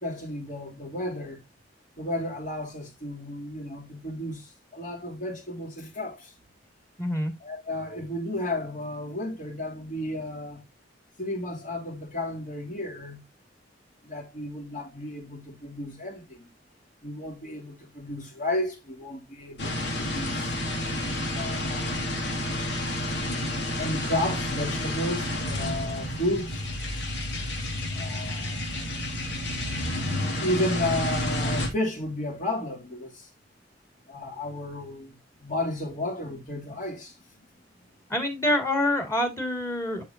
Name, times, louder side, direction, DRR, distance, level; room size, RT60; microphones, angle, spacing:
voice 1, 0.0-1.4 2.0-6.3 7.4-10.6 11.2-13.2 14.0-16.5 17.0-20.5 21.3-22.0 23.8-26.6 27.9-28.9 30.4-33.3 34.1-37.2, left 1 dB, 45° left, 3.3 m, -33 dB
voice 2, 7.0-7.3 38.1-40.0, left 1 dB, 15° left, 2.4 m, -26 dB
sound 1, 19.6-31.7, left 1 dB, 65° left, 2.7 m, -30 dB
10.5 x 5.5 x 2.8 m
head